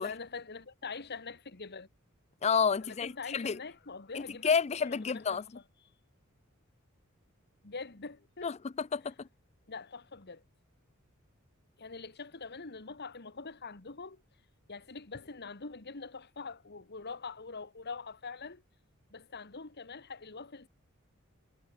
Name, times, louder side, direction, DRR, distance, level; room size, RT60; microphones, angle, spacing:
voice 1, 0.0-1.9 2.8-4.5 4.8-5.6 7.6-8.5 9.7-10.4 11.8-14.2 14.7-18.6 19.1-20.7, left 4 dB, 50° left, 1.8 m, -44 dB
voice 2, 2.4-3.6 4.1-5.4 8.4-9.3, left 6 dB, 30° left, 0.4 m, -30 dB
head